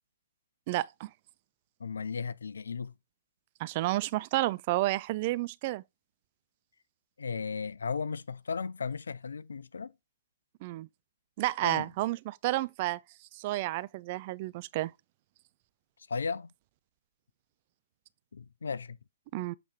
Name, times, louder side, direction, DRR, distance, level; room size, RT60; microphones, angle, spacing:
voice 1, 0.7-1.1 3.6-5.8 10.6-10.9 11.4-13.0 13.3-14.9 19.3-19.5, right 18 dB, 45° right, 0.3 m, -31 dB
voice 2, 1.8-2.9 7.2-9.9 11.6-11.9 16.1-16.5 18.3-19.0, left 5 dB, 80° left, 0.4 m, -35 dB
7.5 x 3.0 x 5.0 m
hypercardioid pair, 125°, 0 cm